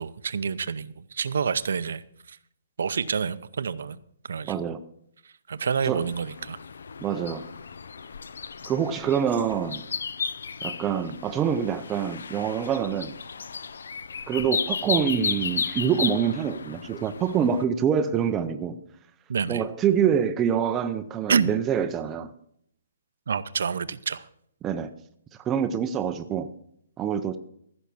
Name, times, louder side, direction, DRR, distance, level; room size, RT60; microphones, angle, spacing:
voice 1, 0.0-2.0 2.3-2.4 2.8-4.0 4.3-4.6 5.5-6.6 19.3-19.6 21.3-21.5 23.3-24.3, right 6 dB, 70° right, 15 dB, 0.7 m, -28 dB
voice 2, 4.4-4.8 5.8-6.0 7.0-7.4 8.7-9.8 10.6-13.1 14.3-18.8 19.5-22.3 24.6-24.9 25.5-26.5 27.0-27.4, right 8 dB, 15° right, 9 dB, 0.5 m, -26 dB
sound 1, 5.9-17.6, left 6 dB, 75° left, 0.5 m, -34 dB
15.0 x 6.2 x 6.9 m, 0.69 s
hypercardioid pair, 165°, 0 cm